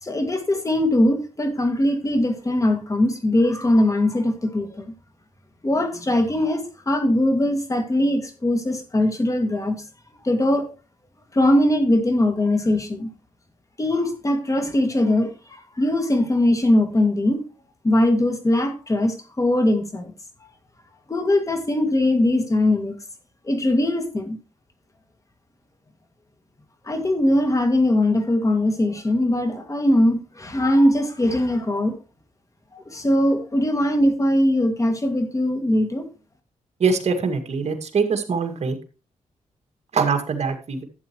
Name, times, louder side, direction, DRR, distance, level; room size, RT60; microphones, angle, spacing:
voice 1, 0.0-4.9 5.6-9.8 10.2-10.7 11.3-13.1 13.8-17.4 17.8-20.1 21.1-23.0 23.5-24.4 26.9-32.0 32.7-36.1, left 1 dB, 25° left, 6 dB, 2.0 m, -21 dB
voice 2, 36.8-38.7 39.9-40.8, right 5 dB, 55° right, 6 dB, 2.0 m, -23 dB
12.0 x 8.1 x 3.0 m, 0.33 s
cardioid pair, 90°, 13 cm